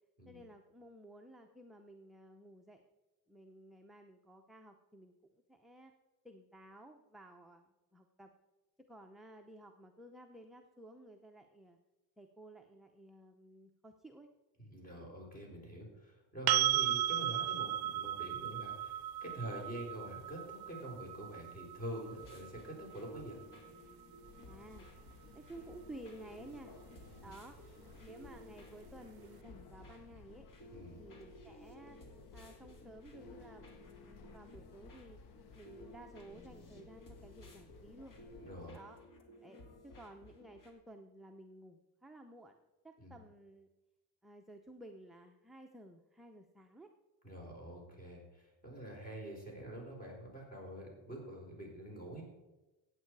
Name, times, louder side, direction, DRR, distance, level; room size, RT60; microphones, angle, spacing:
voice 1, 0.3-2.8 3.3-5.1 5.5-5.9 6.2-8.3 8.9-11.8 12.2-14.3 14.9-15.1 19.4-19.6 24.4-24.9 25.3-26.7 27.2-27.6 27.9-30.5 31.0-32.0 32.3-35.2 35.5-38.1 38.7-39.0 39.4-42.6 42.8-43.7 44.2-46.9, right 1 dB, ahead, 3 dB, 0.6 m, -54 dB
voice 2, 14.6-23.4 27.1-27.3 30.7-31.0 38.4-38.8 43.0-43.2 47.2-52.2, right 1 dB, 20° left, -1 dB, 4.6 m, -46 dB
sound 1, 16.5-24.3 27.1-27.2, right 13 dB, 65° right, 0.5 m, -36 dB
sound 2, 22.1-40.7, left 1 dB, 55° left, 2.1 m, -56 dB
sound 3, 24.2-38.7, left 5 dB, 75° left, 1.1 m, -59 dB
15.0 x 8.8 x 4.7 m, 1.1 s
cardioid pair, 130°, 39 cm